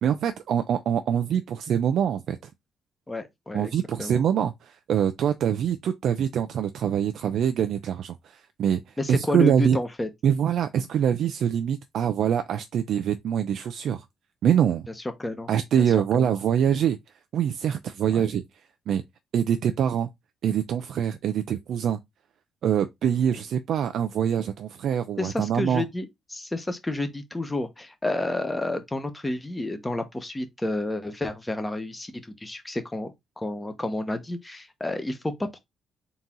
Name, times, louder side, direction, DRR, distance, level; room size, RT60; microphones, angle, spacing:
voice 1, 0.0-2.4 3.5-9.8 10.2-14.1 14.4-14.9 15.5-17.0 17.3-18.4 18.9-19.0 19.3-20.1 20.4-22.0 22.6-25.8, right 9 dB, 70° right, 0.4 m, -24 dB
voice 2, 3.1-3.7 4.0-4.2 9.0-10.1 15.2-15.5 15.8-15.9 16.1-16.3 18.1-18.2 25.2-32.1 32.4-35.6, left 2 dB, 15° left, 1.0 m, -30 dB
4.0 x 2.9 x 3.7 m
cardioid pair, 90°, 0 cm